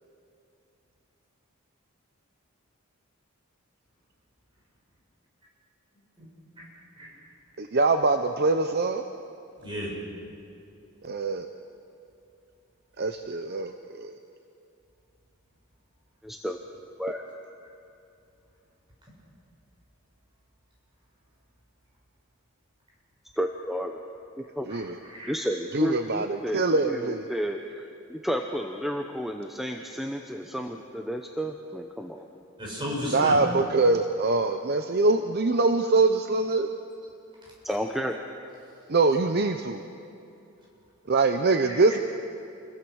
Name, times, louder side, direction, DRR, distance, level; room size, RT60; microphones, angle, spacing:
voice 1, 7.6-9.0 11.0-11.5 13.0-14.1 24.7-25.0 25.7-27.2 33.1-36.7 38.9-39.8 41.1-42.0, right 3 dB, 50° right, 7 dB, 0.8 m, -24 dB
voice 2, 9.6-9.9 24.7-25.4 32.6-33.4 41.7-42.0, left 1 dB, 25° right, -4 dB, 7.4 m, -35 dB
voice 3, 16.2-16.6 17.0-17.2 23.4-24.0 24.5-24.7 25.3-32.3 37.6-38.1, equal, ahead, 3 dB, 0.9 m, -31 dB
28.5 x 22.0 x 6.4 m, 2.7 s
head